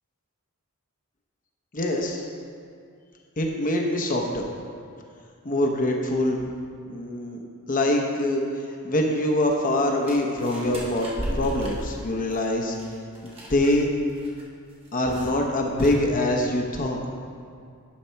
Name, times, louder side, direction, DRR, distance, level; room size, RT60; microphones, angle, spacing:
voice 1, 1.7-2.3 3.4-4.5 5.4-6.4 6.9-7.4 7.7-12.8 13.2-13.9 14.9-17.0, left 1 dB, 40° left, 1 dB, 0.8 m, -24 dB
sound 1, 10.0-13.8 14.1-14.4 14.7-15.4 15.7-15.9, equal, 25° right, 1.6 m, -35 dB
10.5 x 4.3 x 5.6 m, 2.3 s
head